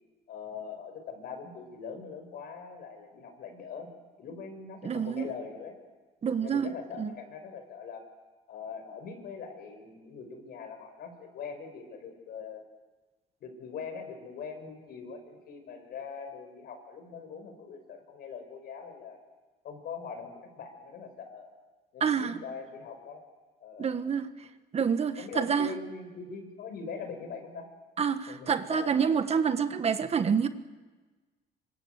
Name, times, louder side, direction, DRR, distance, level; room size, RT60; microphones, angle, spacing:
voice 1, 0.3-3.9 4.2-5.8 6.4-8.0 8.5-12.6 13.4-19.2 19.6-21.5 21.9-23.3 23.6-24.0 25.2-27.7 28.3-29.2, left 5 dB, 65° left, 6 dB, 6.4 m, -42 dB
voice 2, 4.8-5.3 6.2-7.1 22.0-22.4 23.8-24.5 24.7-25.7 28.0-30.5, right 6 dB, 40° right, 10 dB, 1.5 m, -28 dB
25.0 x 25.0 x 8.3 m, 1.3 s
cardioid pair, 110°, 17 cm